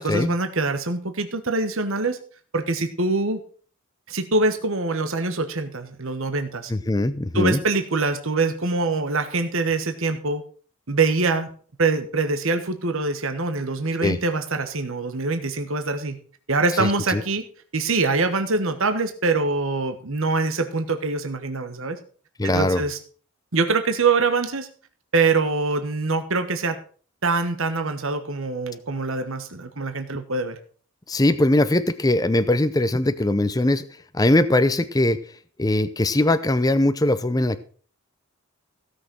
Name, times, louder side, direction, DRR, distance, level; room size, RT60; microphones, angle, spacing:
voice 1, 0.0-2.2 2.5-3.4 4.1-6.7 7.3-10.4 10.9-11.5 11.8-16.2 16.5-17.4 17.7-22.0 22.4-23.0 23.5-24.7 25.1-26.8 27.2-30.6, right 3 dB, 65° right, 7 dB, 1.3 m, -24 dB
voice 2, 6.7-7.6 14.0-14.2 16.8-17.2 22.4-22.8 31.1-33.8 34.1-35.2 35.6-37.6, left 1 dB, 15° left, 11 dB, 0.5 m, -21 dB
16.5 x 6.5 x 6.2 m, 0.43 s
head